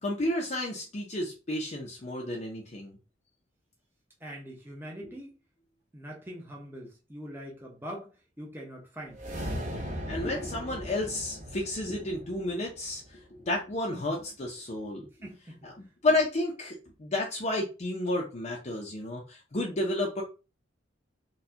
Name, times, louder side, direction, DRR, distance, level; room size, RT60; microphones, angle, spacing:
voice 1, 0.0-3.0 5.0-5.1 10.0-13.2 13.5-15.1 15.6-20.2, left 2 dB, 40° left, 0.6 m, -31 dB
voice 2, 4.2-5.3 5.9-8.1 8.4-9.2 15.2-15.7, equal, 10° right, 0.8 m, -42 dB
sound 1, 9.1-13.5, equal, 40° right, 1.0 m, -38 dB
4.1 x 2.3 x 2.8 m
head